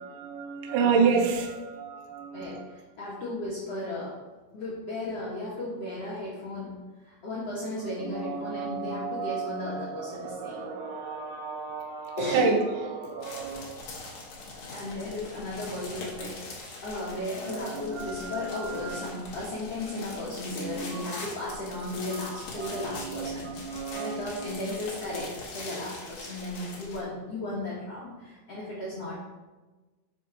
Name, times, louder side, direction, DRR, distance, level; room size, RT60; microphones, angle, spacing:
voice 1, 0.0-2.7 7.8-13.9 17.2-19.1 20.6-21.2 21.8-22.2 22.5-24.5, right 5 dB, 70° right, 1 dB, 2.0 m, -31 dB
voice 2, 0.8-1.1 2.3-4.1 4.5-6.8 7.0-10.7 12.2-12.5 14.7-29.2, left 2 dB, 90° left, -7 dB, 1.3 m, -35 dB
sound 1, 13.2-27.0, left 3 dB, 50° left, 2.2 m, -42 dB
10.5 x 6.3 x 3.4 m, 1.2 s
omnidirectional pair, 5.4 m